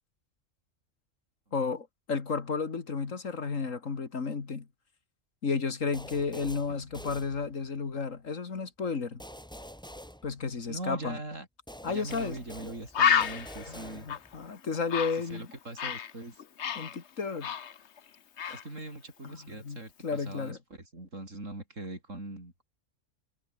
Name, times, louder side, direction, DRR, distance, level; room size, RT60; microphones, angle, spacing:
voice 1, 1.5-4.7 5.4-9.2 10.2-11.2 11.8-12.4 13.7-15.5 16.8-17.5 18.4-18.6 19.2-20.6, left 5 dB, 80° left, 2.5 m, -33 dB
sound 1, 5.9-7.9 9.2-11.0 11.7-14.5, equal, 5° left, 2.3 m, -47 dB
voice 2, 10.7-11.5 11.9-14.1 15.3-16.4 18.5-22.6, right 2 dB, 70° right, 6.6 m, -41 dB
Bird, 12.1-12.2 12.6-12.7 12.9-16.1 16.4-18.1 18.4-18.7, left 8 dB, 60° left, 1.3 m, -30 dB
omnidirectional pair, 1.3 m